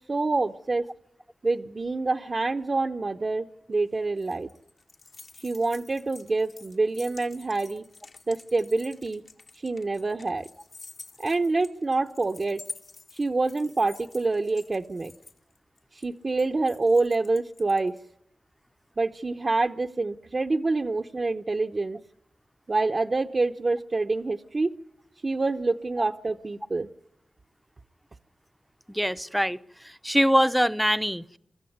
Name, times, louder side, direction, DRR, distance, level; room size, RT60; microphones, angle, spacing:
voice 1, 0.1-0.8 1.4-4.5 5.4-7.9 8.3-9.2 9.6-10.5 11.2-12.6 13.2-15.1 16.0-17.9 19.0-22.0 22.7-24.7 25.2-26.9, right 3 dB, 45° right, 4 dB, 0.8 m, -26 dB
sound 1, 3.7-18.0, left 3 dB, 60° left, 1.7 m, -48 dB
voice 2, 28.9-29.6 29.8-31.4, equal, ahead, 12 dB, 0.7 m, -23 dB
23.0 x 14.0 x 9.5 m, 0.76 s
cardioid pair, 65°, 0 cm